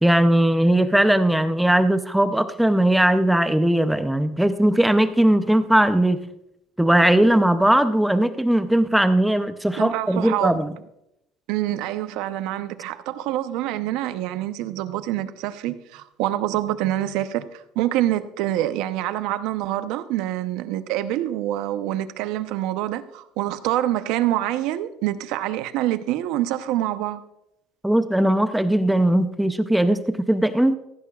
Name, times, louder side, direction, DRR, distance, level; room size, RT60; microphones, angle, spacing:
voice 1, 0.0-6.2 6.8-10.7 27.8-30.8, right 1 dB, 5° right, 0.6 m, -19 dB
voice 2, 9.8-10.6 11.5-27.2, right 13 dB, 75° right, 0.8 m, -26 dB
16.0 x 15.0 x 2.4 m
cardioid pair, 140°, 0 cm